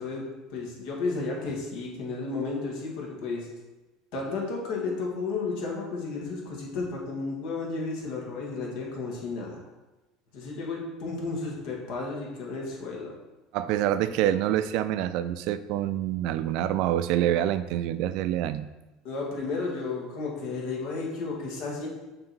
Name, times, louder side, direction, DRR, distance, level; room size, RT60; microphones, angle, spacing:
voice 1, 0.0-3.5 4.1-9.6 10.3-13.1 19.0-21.9, left 3 dB, 65° left, -2 dB, 2.0 m, -33 dB
voice 2, 13.5-18.7, right 12 dB, 65° right, 12 dB, 0.4 m, -26 dB
6.5 x 3.9 x 4.5 m, 1.1 s
supercardioid pair, 130°, 0 cm